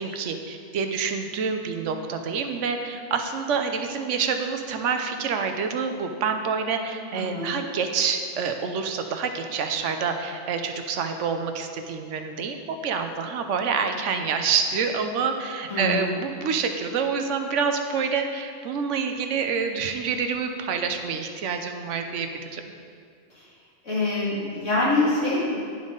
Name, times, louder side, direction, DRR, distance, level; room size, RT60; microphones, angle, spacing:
voice 1, 0.0-22.3 22.5-22.6, right 5 dB, 80° right, 6 dB, 1.0 m, -27 dB
voice 2, 15.7-16.1 23.3-23.5 23.8-25.6, left 2 dB, 85° left, -9 dB, 2.7 m, -25 dB
10.0 x 5.4 x 3.8 m, 2.2 s
omnidirectional pair, 1.2 m